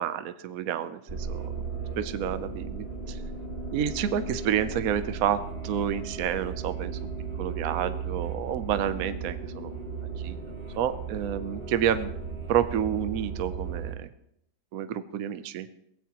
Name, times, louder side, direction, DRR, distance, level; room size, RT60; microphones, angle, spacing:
voice 1, 0.0-1.0 1.3-1.4 2.0-3.2 3.7-7.1 7.4-9.7 10.2-10.4 10.8-12.1 12.5-14.1 14.7-15.7, right 9 dB, 60° right, 11 dB, 0.9 m, -29 dB
sound 1, 1.1-13.9, right 5 dB, 35° right, 1.4 m, -36 dB
23.0 x 17.0 x 3.0 m, 0.76 s
omnidirectional pair, 2.1 m